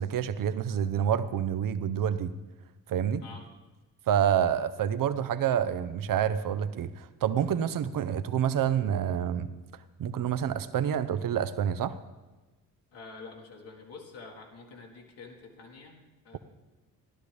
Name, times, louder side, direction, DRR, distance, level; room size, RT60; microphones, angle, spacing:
voice 1, 0.0-2.3 2.9-3.2 4.1-9.5 10.0-12.0, right 9 dB, 45° right, 13 dB, 0.7 m, -28 dB
voice 2, 12.9-16.4, left 4 dB, 60° left, -1 dB, 1.8 m, -47 dB
14.0 x 11.5 x 3.4 m, 1.2 s
hypercardioid pair, 45°, 45 cm